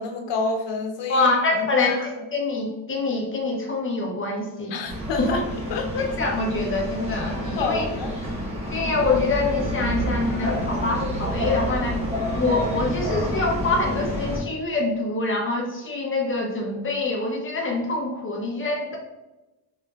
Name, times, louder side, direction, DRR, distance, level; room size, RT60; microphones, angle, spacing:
voice 1, 0.0-1.3 1.6-2.1 4.7-5.4 5.7-6.1 7.6-8.1, left 4 dB, 75° left, 3 dB, 0.9 m, -28 dB
voice 2, 1.1-2.0 2.3-4.8 5.2-5.4 6.2-7.9 8.7-12.0 12.3-19.0, left 3 dB, 30° left, -1 dB, 1.0 m, -25 dB
sound 1, 4.9-14.4, equal, 15° right, 1.3 m, -28 dB
4.8 x 4.2 x 2.5 m, 1.0 s
cardioid pair, 170°, 43 cm